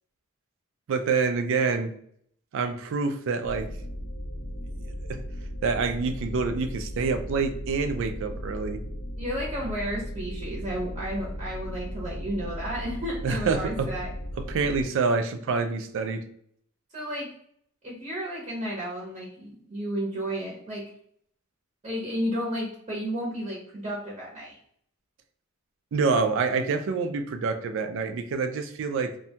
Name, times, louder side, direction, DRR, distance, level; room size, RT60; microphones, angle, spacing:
voice 1, 0.9-1.9 2.5-3.7 5.1-5.2 5.6-8.8 13.2-13.9 14.5-16.2 25.9-29.1, right 4 dB, 65° right, 8 dB, 0.4 m, -27 dB
sound 1, 3.4-14.9, equal, 50° left, 0.4 m, -36 dB
voice 2, 9.2-14.1 16.9-17.3 17.8-20.8 21.8-24.6, equal, 30° right, -4 dB, 0.7 m, -32 dB
2.6 x 2.2 x 2.7 m, 0.66 s
head